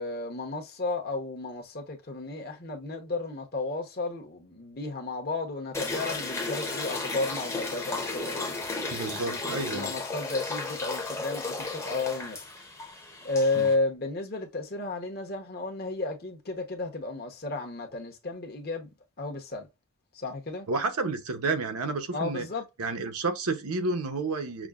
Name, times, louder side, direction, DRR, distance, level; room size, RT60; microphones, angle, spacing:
voice 1, 0.0-8.6 9.3-12.4 13.2-18.9 19.2-19.7 20.1-20.7 22.1-22.6, left 3 dB, 45° left, 0.9 m, -33 dB
sound 1, 5.7-13.7, left 3 dB, 10° left, 0.7 m, -34 dB
voice 2, 8.9-9.9 13.6-13.7 20.7-22.5 22.8-24.7, right 3 dB, 80° right, 0.8 m, -30 dB
6.0 x 2.1 x 2.4 m
head